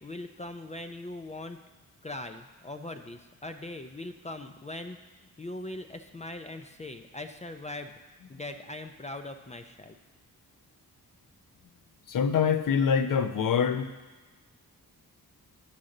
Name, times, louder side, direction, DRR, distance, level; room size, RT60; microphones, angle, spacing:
voice 1, 0.0-1.6 2.0-8.0 8.3-10.0, left 2 dB, 20° left, 7 dB, 0.3 m, -41 dB
voice 2, 12.1-13.9, left 7 dB, 60° left, 9 dB, 0.6 m, -25 dB
9.9 x 3.8 x 6.5 m, 1.3 s
wide cardioid pair, 115°, 37 cm